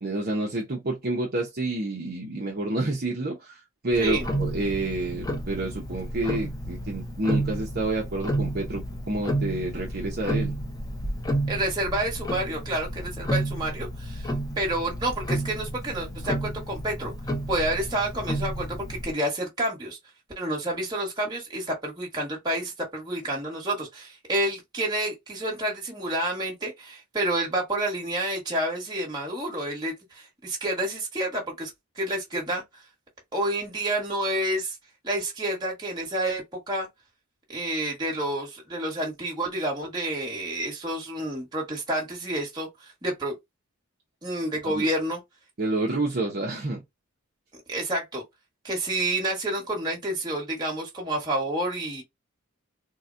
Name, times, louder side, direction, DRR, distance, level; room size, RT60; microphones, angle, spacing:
voice 1, 0.0-10.5 44.6-44.9 45.6-46.8, right 2 dB, 45° right, 0.7 m, -29 dB
Tick-tock, 3.9-19.1, right 1 dB, 15° left, 0.6 m, -31 dB
voice 2, 11.5-14.3 14.6-17.1 17.5-20.0 20.4-31.7 31.9-32.6 33.3-34.8 35.0-36.9 37.5-43.3 44.2-45.2 47.7-48.2 48.6-52.0, right 1 dB, 20° right, 1.3 m, -29 dB
3.8 x 2.2 x 2.5 m
head